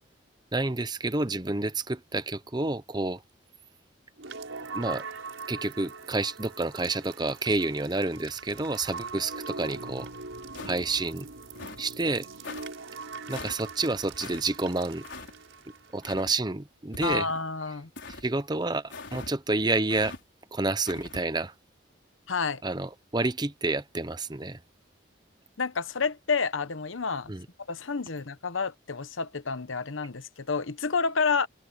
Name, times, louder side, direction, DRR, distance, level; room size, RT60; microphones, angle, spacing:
voice 1, 0.5-3.2 4.7-5.0 5.5-10.1 10.6-11.3 11.8-12.3 13.3-15.0 15.9-17.3 18.1-20.1 20.5-21.5 22.6-24.6 27.3-27.5, right 2 dB, 20° right, 0.8 m, -29 dB
sound 1, 4.2-16.1, right 4 dB, 75° right, 4.9 m, -42 dB
sound 2, 10.5-11.0 11.5-11.9 12.4-12.7 13.3-13.6 14.2-14.4 15.0-15.3 16.0-16.3 16.9-17.4 18.0-18.3 18.9-19.3 19.9-20.2 20.9-21.2, left 3 dB, 65° left, 4.8 m, -42 dB
voice 2, 17.0-17.9 22.3-22.6 25.6-27.3 27.7-31.5, left 5 dB, 80° left, 1.0 m, -29 dB
head